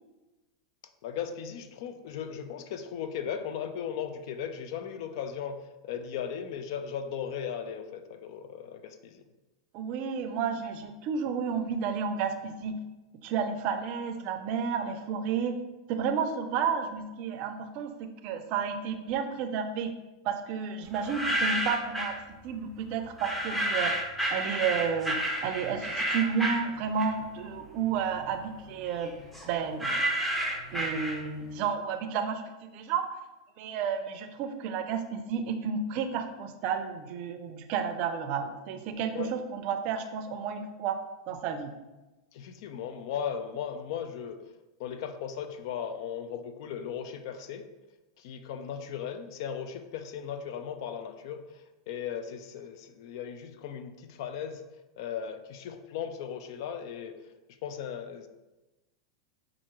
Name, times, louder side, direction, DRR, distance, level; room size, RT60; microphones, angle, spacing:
voice 1, 1.0-9.2 39.1-39.3 42.3-44.4 44.8-47.7 48.2-54.6 55.0-57.3 57.6-58.3, left 8 dB, 60° left, 8 dB, 0.4 m, -37 dB
voice 2, 9.7-12.8 13.2-15.6 15.9-17.9 18.2-19.9 20.2-22.2 22.4-23.9 24.3-25.1 25.4-29.1 29.4-30.0 30.7-32.4 32.7-33.2 33.6-41.0 41.3-41.7, right 6 dB, 50° right, 7 dB, 0.5 m, -31 dB
sound 1, 20.9-22.2 23.2-27.4 27.8-31.5, right 1 dB, 5° left, 0.6 m, -31 dB
5.6 x 2.5 x 3.0 m, 1.1 s
hypercardioid pair, 120°, 3 cm